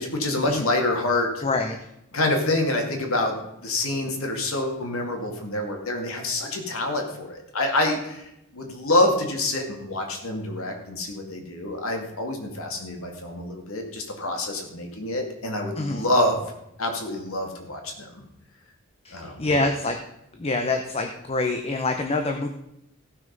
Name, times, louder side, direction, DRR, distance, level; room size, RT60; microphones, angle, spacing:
voice 1, 0.0-1.4 2.1-8.2 8.5-16.4 16.8-18.2 19.1-19.7, left 2 dB, 85° left, 3 dB, 2.3 m, -26 dB
voice 2, 1.4-1.7 15.8-16.0 19.4-19.9 20.4-22.5, left 2 dB, 30° left, 4 dB, 0.8 m, -25 dB
16.0 x 6.1 x 5.3 m, 0.83 s
head